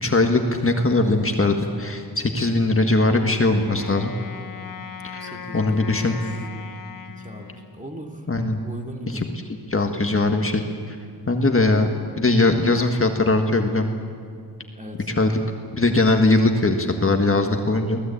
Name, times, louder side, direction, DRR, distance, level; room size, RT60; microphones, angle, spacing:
voice 1, 0.0-4.1 5.1-5.2 5.5-6.2 8.3-8.6 9.7-11.0 11.3-11.9 12.1-13.9 15.2-15.4 15.7-18.0, left 2 dB, 35° left, 4 dB, 1.6 m, -20 dB
Wind instrument woodwind instrument, 3.6-8.0, left 6 dB, 55° left, 1.3 m, -38 dB
voice 2, 5.2-6.5 7.1-8.3 8.6-9.3 14.7-15.1, right 1 dB, 20° right, 2 dB, 2.7 m, -38 dB
24.0 x 18.0 x 8.6 m, 2.3 s
wide cardioid pair, 110°, 39 cm